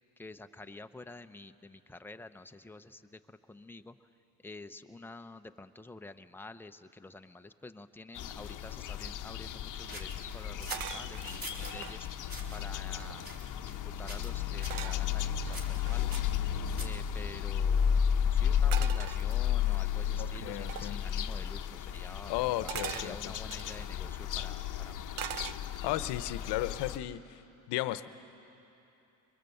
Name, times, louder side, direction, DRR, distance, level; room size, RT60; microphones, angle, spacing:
voice 1, 0.2-3.9 4.4-12.1 12.5-13.2 13.7-16.1 16.8-18.0 18.3-25.0, left 2 dB, 5° left, 8 dB, 0.7 m, -49 dB
sound 1, 8.1-27.0, left 8 dB, 50° left, 0.9 m, -33 dB
sound 2, 9.9-11.8 12.2-12.6 13.2-13.8 14.1-14.4 14.6-14.9 15.5-17.1, equal, 25° right, 3.7 m, -45 dB
sound 3, 10.7-12.0 12.6-12.7 12.9-13.5 14.7-16.3 18.7-19.8 20.7-21.0 22.7-23.9 25.2-26.0 26.4-26.8, right 10 dB, 55° right, 0.8 m, -42 dB
voice 2, 20.2-21.0 22.3-23.3 25.8-27.4 27.7-28.1, left 14 dB, 80° left, 13 dB, 0.9 m, -34 dB
23.5 x 21.5 x 7.9 m, 2.9 s
cardioid pair, 90°, 40 cm